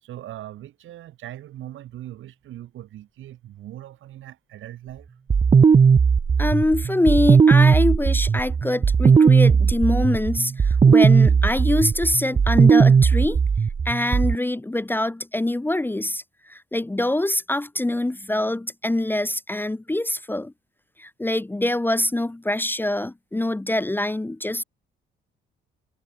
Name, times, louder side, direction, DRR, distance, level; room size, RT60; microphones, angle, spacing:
voice 1, 0.0-5.1, right 13 dB, 80° right, 5.9 m, -40 dB
sound 1, 5.3-14.4, right 6 dB, 30° right, 0.7 m, -17 dB
voice 2, 6.4-13.4 13.8-20.5 21.0-24.6, left 1 dB, 10° left, 0.9 m, -24 dB
cardioid pair, 90°, 20 cm